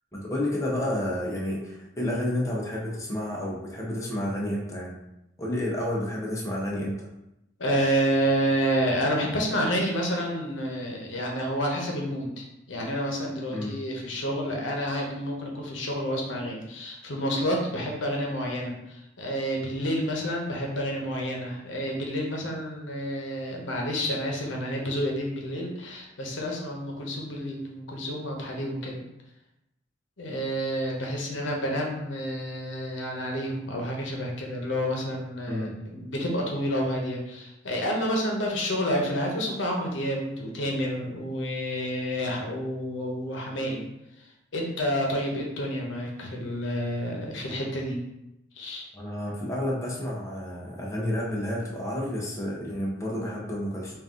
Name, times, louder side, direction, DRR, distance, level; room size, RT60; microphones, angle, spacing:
voice 1, 0.1-5.0 5.4-7.1 13.5-13.7 35.5-35.7 48.9-54.0, left 1 dB, 15° left, -3 dB, 0.7 m, -30 dB
voice 2, 7.6-29.0 30.2-43.8 44.5-48.0 48.6-48.9, equal, 75° left, 0 dB, 0.9 m, -29 dB
3.9 x 2.5 x 3.6 m, 0.88 s
head